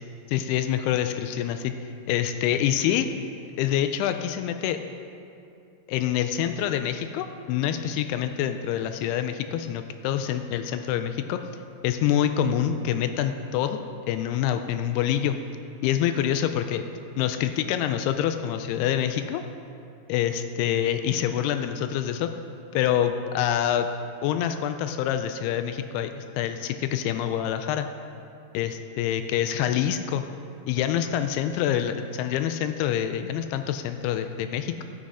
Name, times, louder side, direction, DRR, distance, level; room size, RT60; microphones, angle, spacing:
voice 1, 0.3-1.7 2.1-3.1 3.6-4.8 5.9-11.4 11.8-15.4 15.8-16.9 17.2-19.4 20.1-22.3 22.7-23.9 24.2-27.9 28.5-30.2 30.7-34.8, left 10 dB, 85° left, 8 dB, 2.3 m, -26 dB
18.0 x 6.3 x 4.9 m, 2.6 s
omnidirectional pair, 5.1 m